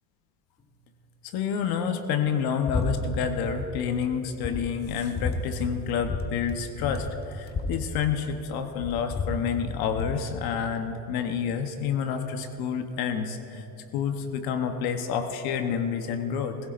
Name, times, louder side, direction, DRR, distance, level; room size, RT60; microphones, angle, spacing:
voice 1, 1.2-13.7 13.9-16.6, left 7 dB, 70° left, 7 dB, 1.0 m, -29 dB
sound 1, 2.7-2.9 3.2-3.7 4.1-4.2 4.4-5.4 6.0-6.2 6.5-6.6 6.8-8.5 8.8-10.2, left 4 dB, 25° left, 1.2 m, -31 dB
19.5 x 16.5 x 2.5 m, 3.0 s
supercardioid pair, 105°, 38 cm